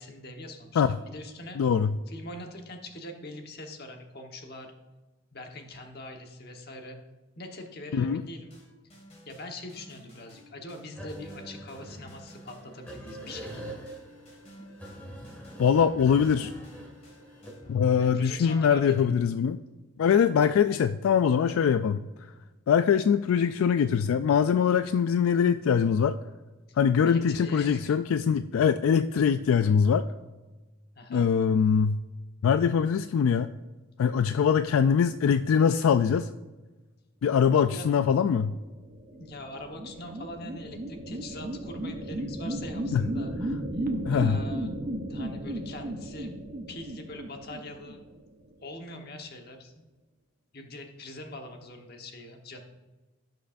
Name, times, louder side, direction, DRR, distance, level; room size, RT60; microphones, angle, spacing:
voice 1, 0.0-1.6 2.1-4.7 5.3-7.0 7.4-8.5 9.2-13.8 18.0-19.2 26.7-26.8 27.0-28.0 30.9-31.3 37.5-37.9 39.1-43.3 43.8-44.7 45.1-46.3 46.7-48.0 48.6-49.8 50.5-52.6, left 1 dB, 50° left, 3 dB, 1.2 m, -43 dB
voice 2, 1.6-1.9 7.9-8.2 15.6-16.5 17.7-19.6 20.0-22.0 22.7-26.2 26.8-30.0 31.1-32.0 32.4-33.5 34.0-36.3 37.2-38.5 42.9-43.0 44.1-44.4, left 7 dB, 75° left, 10 dB, 0.3 m, -23 dB
sound 1, 8.5-18.4, equal, 30° left, 2.1 m, -52 dB
sound 2, 10.9-17.5, right 1 dB, 5° left, 2.0 m, -44 dB
sound 3, 38.6-48.4, right 1 dB, 40° right, 0.9 m, -35 dB
16.5 x 6.3 x 2.6 m, 1.2 s
head